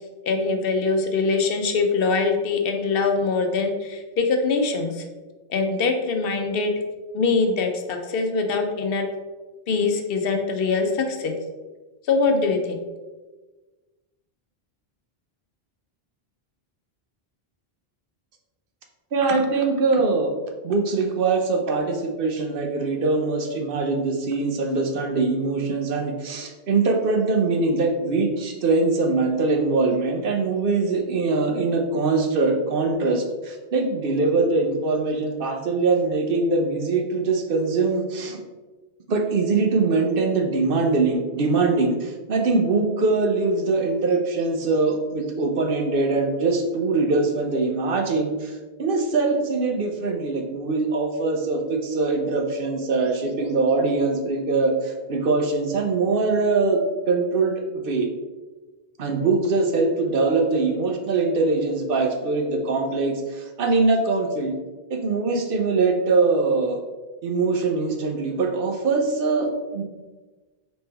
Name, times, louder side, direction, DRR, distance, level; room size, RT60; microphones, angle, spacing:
voice 1, 0.2-5.0 5.5-6.7 7.1-9.1 9.7-11.3 12.1-12.8, left 4 dB, 70° left, 5 dB, 0.8 m, -23 dB
voice 2, 19.1-20.3 20.6-38.4 39.1-56.8 57.1-58.1 59.0-64.5 64.9-66.8 67.2-69.5 69.7-69.8, right 3 dB, 65° right, 3 dB, 0.8 m, -22 dB
4.3 x 3.3 x 3.3 m, 1.2 s
omnidirectional pair, 1.0 m